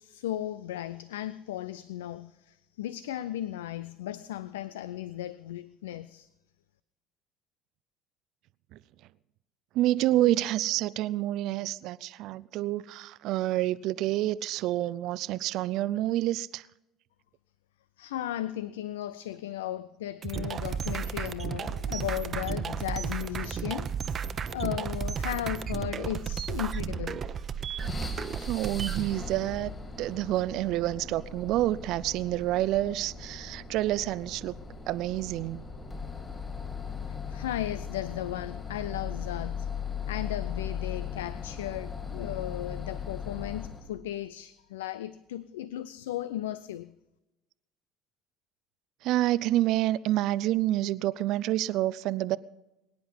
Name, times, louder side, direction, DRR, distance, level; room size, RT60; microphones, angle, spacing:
voice 1, 0.0-6.3 18.0-27.2 37.1-39.7 40.1-46.9, left 13 dB, 75° left, 0.5 m, -36 dB
voice 2, 9.7-16.7 28.5-29.7 30.0-34.5 34.9-35.6 49.0-52.4, right 15 dB, 55° right, 0.5 m, -28 dB
sound 1, 20.2-29.1, right 7 dB, 40° right, 0.9 m, -33 dB
sound 2, 27.8-43.9, left 6 dB, 25° left, 4.0 m, -38 dB
23.5 x 10.0 x 5.6 m
figure-of-eight pair, 60°, 0 cm